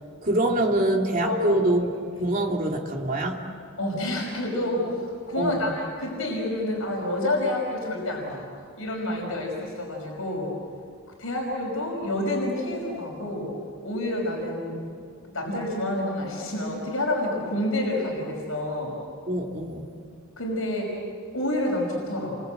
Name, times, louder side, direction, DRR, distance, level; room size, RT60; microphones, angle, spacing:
voice 1, 0.2-1.9 2.2-3.5 5.4-5.8 19.3-19.9, right 1 dB, 40° right, 0 dB, 2.9 m, -25 dB
voice 2, 1.2-1.6 3.8-8.5 8.8-10.5 11.2-13.5 13.8-14.8 15.3-18.9 20.4-21.0 21.3-22.4, left 1 dB, 65° left, -1 dB, 5.7 m, -28 dB
30.0 x 24.0 x 8.1 m, 2.2 s
head